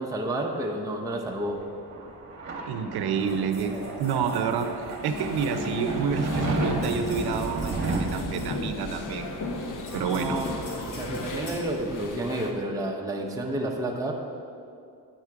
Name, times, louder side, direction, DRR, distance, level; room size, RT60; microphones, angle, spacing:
voice 1, 0.0-1.6 3.7-3.8 10.1-14.1, right 1 dB, 10° right, 0 dB, 0.6 m, -30 dB
sound 1, 1.3-12.6, right 3 dB, 45° right, 1.0 m, -34 dB
voice 2, 2.7-4.7 5.0-9.3 9.9-10.4, right 6 dB, 75° right, 7 dB, 0.6 m, -28 dB
sound 2, 3.1-12.5, left 1 dB, 80° left, 1.7 m, -48 dB
sound 3, 5.0-12.5, left 3 dB, 50° left, 0.7 m, -36 dB
8.8 x 3.6 x 4.6 m, 2.4 s
cardioid pair, 95°, 39 cm